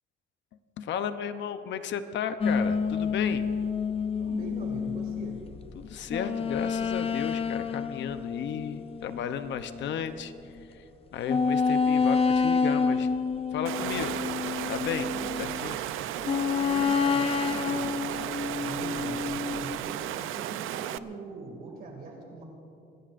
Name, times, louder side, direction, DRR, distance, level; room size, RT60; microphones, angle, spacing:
voice 1, 0.8-3.4 5.7-10.3 10.7-10.8 11.1-13.1 13.5-14.2 14.7-15.8, left 8 dB, 60° left, 10 dB, 0.8 m, -34 dB
sound 1, 2.4-10.1 10.6-10.7 11.3-15.7 16.2-19.8, left 5 dB, 30° left, 0.5 m, -29 dB
voice 2, 4.2-5.4 15.2-15.4 16.0-17.9 18.4-22.4, right 3 dB, 45° right, 1 dB, 2.4 m, -42 dB
Water, 13.7-21.0, right 12 dB, 80° right, 0.5 m, -34 dB
25.5 x 20.0 x 2.6 m, 2.7 s
cardioid pair, 160°, 21 cm